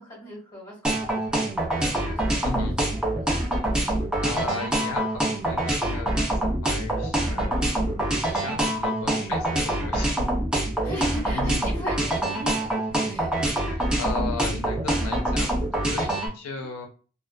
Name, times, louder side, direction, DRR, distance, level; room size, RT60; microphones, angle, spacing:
voice 1, 0.0-1.4 1.6-3.1 10.8-12.7 12.9-13.4, left 1 dB, 15° left, -5 dB, 1.3 m, -40 dB
sound 1, 0.8-16.3, right 1 dB, 5° right, 0.5 m, -25 dB
voice 2, 2.4-2.8 4.0-10.1 10.8-11.1 11.3-11.6 13.6-16.9, left 4 dB, 85° left, 3 dB, 0.4 m, -36 dB
2.5 x 2.2 x 2.2 m, 0.37 s
head